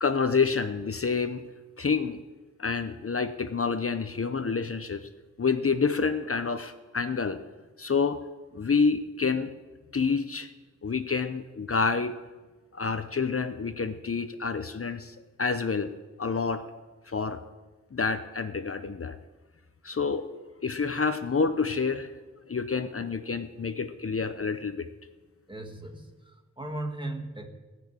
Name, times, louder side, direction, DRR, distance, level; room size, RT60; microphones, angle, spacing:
voice 1, 0.0-1.4 1.8-2.2 2.6-5.1 5.4-7.4 7.8-8.3 8.5-9.5 9.9-10.5 10.8-12.1 12.7-15.9 16.2-16.6 17.1-17.4 17.9-19.2 19.8-20.3 20.6-22.1 22.5-24.9, left 5 dB, 45° left, 9 dB, 0.7 m, -28 dB
voice 2, 25.5-27.5, right 1 dB, 15° right, 4 dB, 1.7 m, -37 dB
18.5 x 6.2 x 8.8 m, 1.3 s
wide cardioid pair, 70°, 31 cm